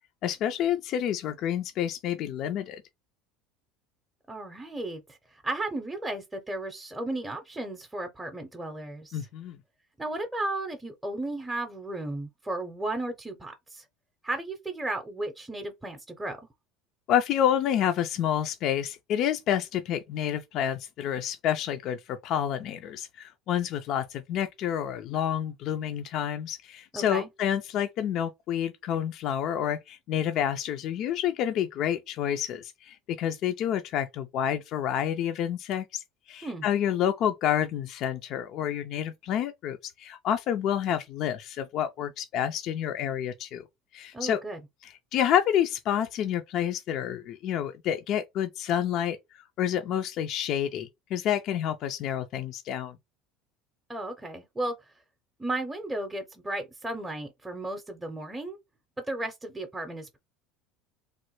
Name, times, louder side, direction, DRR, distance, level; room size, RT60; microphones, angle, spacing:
voice 1, 0.2-2.8 9.1-9.6 17.1-43.6 43.9-44.4 44.8-49.2 49.6-53.0, left 10 dB, 55° left, 0.4 m, -29 dB
voice 2, 4.3-9.2 10.0-13.8 14.2-16.4 26.9-27.3 36.4-36.7 44.1-44.6 53.9-54.7 55.4-58.6 59.1-60.2, right 2 dB, 10° right, 0.6 m, -34 dB
3.0 x 2.1 x 3.0 m
supercardioid pair, 105°, 0 cm